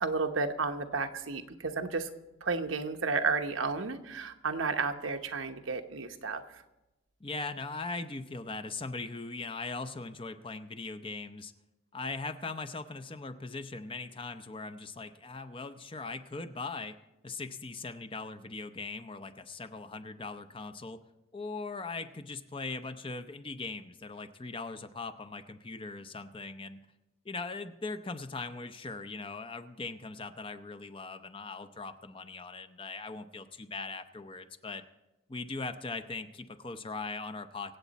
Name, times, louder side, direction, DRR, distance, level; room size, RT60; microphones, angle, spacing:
voice 1, 0.0-2.1 2.4-6.6, right 4 dB, 80° right, 6 dB, 1.0 m, -32 dB
voice 2, 7.2-11.5 11.9-17.0 17.2-21.0 21.3-26.8 27.2-34.8 35.3-37.8, left 3 dB, 25° left, 10 dB, 0.6 m, -40 dB
24.5 x 8.3 x 4.1 m, 0.99 s
head